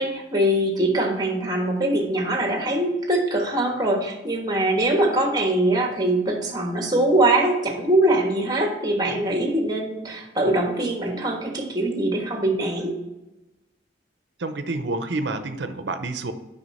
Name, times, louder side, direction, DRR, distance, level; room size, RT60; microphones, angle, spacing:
voice 1, 0.0-13.0, right 1 dB, 20° right, 2 dB, 1.4 m, -22 dB
voice 2, 14.4-16.3, right 2 dB, 65° right, 9 dB, 0.7 m, -28 dB
7.8 x 5.6 x 4.2 m, 1.0 s
head